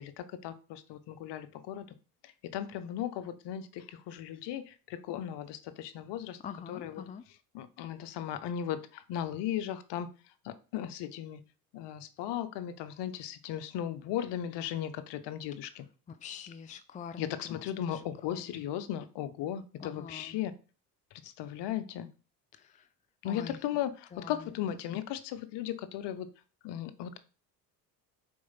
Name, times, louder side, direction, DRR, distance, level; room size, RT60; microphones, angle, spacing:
voice 1, 0.0-1.9 2.2-6.4 6.7-7.0 7.5-10.1 10.4-11.4 11.7-15.8 17.2-20.5 21.2-22.1 23.2-26.3 26.6-27.2, left 10 dB, 60° left, 0.9 m, -36 dB
voice 2, 6.4-7.2 16.1-17.6 17.9-18.6 19.8-20.4 22.5-22.9 23.2-23.6 24.1-24.5, left 7 dB, 15° left, 0.5 m, -45 dB
4.7 x 4.4 x 5.7 m
hypercardioid pair, 65°, 48 cm